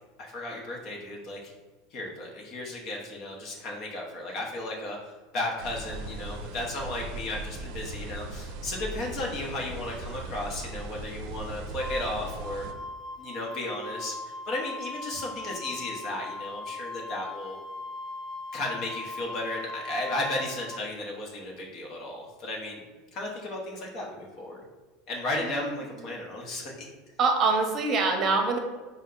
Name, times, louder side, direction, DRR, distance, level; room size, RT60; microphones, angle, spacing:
voice 1, 0.2-1.5 1.9-12.7 13.2-17.6 18.5-22.8 23.1-24.6 25.1-26.9, left 1 dB, 50° left, -1 dB, 0.9 m, -34 dB
sound 1, 5.6-12.7, right 2 dB, 65° right, 0.5 m, -39 dB
Wind instrument woodwind instrument, 11.8-20.8, left 2 dB, 10° right, 0.5 m, -39 dB
voice 2, 27.2-28.6, right 4 dB, 40° right, 3 dB, 0.8 m, -24 dB
4.2 x 2.2 x 3.8 m, 1.3 s
supercardioid pair, 105°, 0 cm